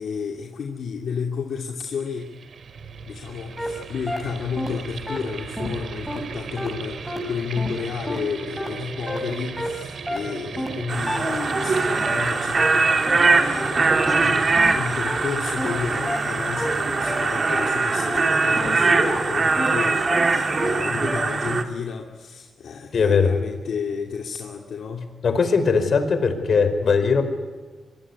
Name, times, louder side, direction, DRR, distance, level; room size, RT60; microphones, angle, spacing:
voice 1, 0.0-2.3 3.1-25.1, left 6 dB, 75° left, 1 dB, 2.6 m, -32 dB
sound 1, 2.0-18.7, right 5 dB, 65° right, 2.5 m, -37 dB
sound 2, 3.6-3.7 4.1-4.2 4.6-4.7 5.1-5.2 5.6-5.7 6.1-6.2 6.6-6.7 7.1-7.2 7.6-7.7 8.1-8.2 8.6-8.7 9.1-9.2 9.6-9.7 10.1-10.2 10.6-10.7 11.1-11.2 11.6-11.7 12.1-12.2 12.6-12.7 13.1-13.2 13.6-13.7 14.1-14.2 14.6-14.7 15.1-15.2 15.6-15.7 16.1-16.2 16.6-16.7 17.1-17.2 17.6-17.7 18.1-18.2 18.6-18.7 19.1-19.2 19.6-19.7 20.1-20.2 20.6-20.7 21.1-21.2, left 1 dB, ahead, 6.8 m, -29 dB
sound 3, 10.9-21.6, right 4 dB, 40° right, 2.6 m, -22 dB
voice 2, 22.9-23.3 25.2-27.2, left 5 dB, 55° left, 9 dB, 4.9 m, -19 dB
24.5 x 23.5 x 9.8 m, 1.3 s
cardioid pair, 105°, 0 cm